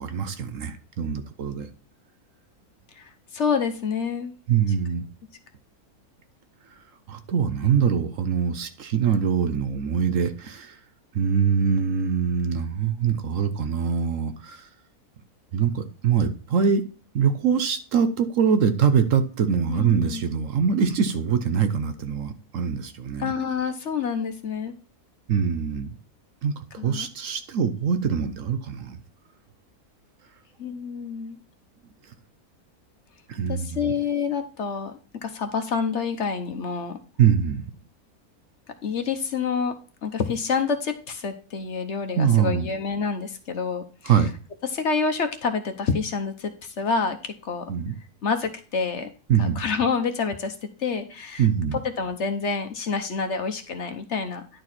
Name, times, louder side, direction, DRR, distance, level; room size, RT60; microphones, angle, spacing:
voice 1, 0.0-1.7 4.5-5.1 7.1-10.8 11.1-14.7 15.5-16.8 17.1-23.3 25.3-26.0 26.4-26.5 26.8-29.0 33.3-33.9 37.2-37.6 42.2-42.7 44.0-44.3 47.7-47.9 49.3-49.6 51.4-51.8, right 7 dB, 65° right, 1.1 m, -23 dB
voice 2, 2.9-4.3 19.7-20.2 23.2-24.7 26.8-27.1 30.6-31.4 33.5-37.0 38.8-39.7 40.0-44.3 44.6-47.7 48.2-49.1 49.4-54.4, left 5 dB, 55° left, 1.0 m, -28 dB
10.5 x 4.6 x 4.2 m
omnidirectional pair, 1.6 m